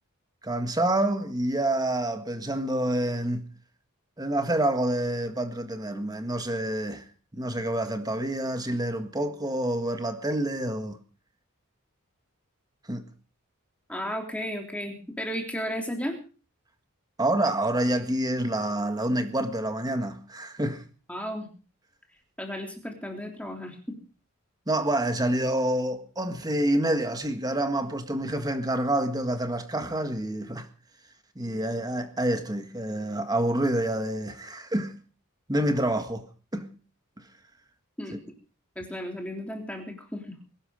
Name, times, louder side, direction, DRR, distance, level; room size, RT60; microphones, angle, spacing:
voice 1, 0.4-3.4 4.2-7.0 7.3-11.0 12.9-13.0 17.2-20.8 24.7-30.7 31.3-35.0 35.5-36.2 36.5-36.7, right 1 dB, 20° right, 1.7 m, -27 dB
voice 2, 13.9-16.2 21.1-21.5 22.4-24.0 38.0-38.2 38.7-40.3, equal, 5° left, 3.4 m, -34 dB
21.5 x 12.0 x 5.1 m
head